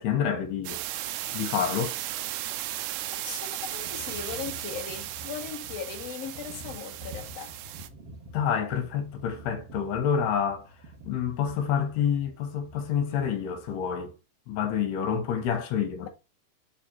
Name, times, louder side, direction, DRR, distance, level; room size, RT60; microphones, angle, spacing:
voice 1, 0.0-2.0 8.3-10.7 11.1-14.1 14.5-16.1, left 8 dB, 80° left, 3.1 m, -28 dB
sound 1, 0.6-7.9, right 14 dB, 85° right, 2.7 m, -36 dB
voice 2, 3.2-7.6 16.0-16.1, left 7 dB, 55° left, 2.0 m, -38 dB
sound 2, 3.7-13.9, right 1 dB, 55° right, 1.7 m, -48 dB
7.1 x 4.2 x 4.2 m
omnidirectional pair, 4.7 m